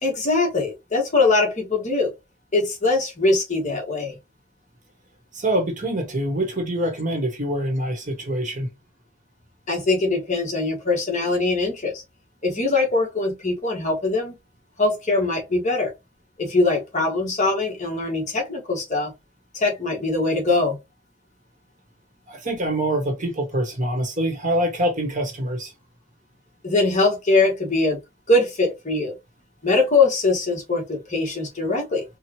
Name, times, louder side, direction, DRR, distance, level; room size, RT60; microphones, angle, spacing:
voice 1, 0.0-2.1 2.5-4.2 9.7-12.0 12.4-14.3 14.8-15.9 16.4-19.1 19.5-20.8 26.6-28.0 28.3-29.1 29.6-32.0, left 3 dB, 35° left, 1.4 m, -22 dB
voice 2, 5.3-8.7 22.3-25.7, right 1 dB, 35° right, 1.2 m, -25 dB
4.6 x 2.3 x 2.9 m
head